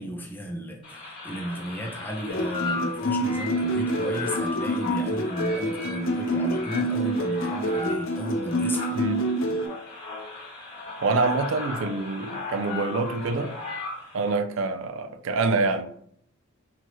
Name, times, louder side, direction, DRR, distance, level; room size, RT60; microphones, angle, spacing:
voice 1, 0.0-9.0, equal, 10° left, 0.6 m, -34 dB
sound 1, 0.8-14.4, left 3 dB, 25° left, 1.3 m, -36 dB
sound 2, 2.3-9.6, right 1 dB, 65° left, 0.5 m, -27 dB
voice 2, 11.0-13.5 14.1-15.9, right 3 dB, 65° right, 0.4 m, -26 dB
4.5 x 2.8 x 3.0 m
head